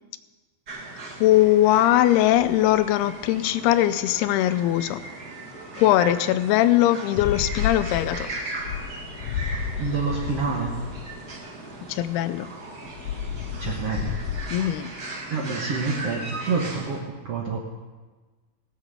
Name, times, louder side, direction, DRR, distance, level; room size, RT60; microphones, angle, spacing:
sound 1, 0.7-17.0, right 2 dB, 85° right, 0.8 m, -38 dB
voice 1, 1.2-5.0 5.8-8.3 11.9-12.5 14.5-14.9, left 13 dB, 90° left, 12 dB, 2.7 m, -20 dB
sound 2, 7.2-11.1 12.9-14.6, left 8 dB, 70° left, 2.2 m, -31 dB
voice 2, 9.8-10.7 13.6-14.1 14.6-14.7 15.3-17.6, right 4 dB, 65° right, -1 dB, 1.5 m, -27 dB
18.0 x 7.9 x 6.8 m, 1.3 s
omnidirectional pair, 4.5 m